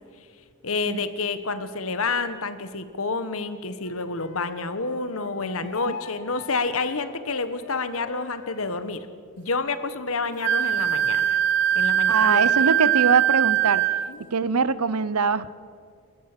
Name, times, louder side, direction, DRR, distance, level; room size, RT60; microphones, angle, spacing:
voice 1, 0.6-9.1 9.4-11.4 11.7-12.4 12.7-12.8 14.1-14.2, left 4 dB, 65° left, 11 dB, 1.4 m, -29 dB
Wind instrument woodwind instrument, 3.8-8.9, left 5 dB, 90° left, 3.0 m, -42 dB
Wind instrument woodwind instrument 2, 10.4-14.1, right 11 dB, 55° right, 0.6 m, -21 dB
voice 2, 12.1-13.8 14.3-15.5, right 5 dB, 90° right, 16 dB, 0.8 m, -23 dB
28.5 x 14.0 x 6.9 m, 2.2 s
head